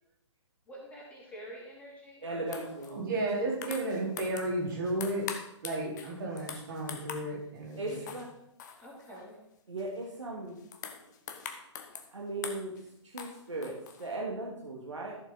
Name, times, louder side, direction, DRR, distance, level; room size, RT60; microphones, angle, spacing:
voice 1, 0.7-2.7 8.8-9.4, equal, 10° left, -3 dB, 3.1 m, -48 dB
voice 2, 2.2-3.1 7.8-8.3 9.7-10.6 12.1-12.7 13.0-15.2, right 2 dB, 70° right, -2 dB, 2.0 m, -37 dB
sound 1, 2.5-2.9 3.3-4.6 4.9-7.3 7.7-8.3 8.6-9.3 9.8-10.1 10.5-12.1 12.4-12.8 13.2-14.2, left 7 dB, 35° left, 1.1 m, -43 dB
voice 3, 2.8-5.3 5.6-8.1 9.1-9.2, right 2 dB, 45° right, -3 dB, 4.1 m, -33 dB
14.0 x 7.1 x 4.0 m, 0.78 s
figure-of-eight pair, 125°, 16 cm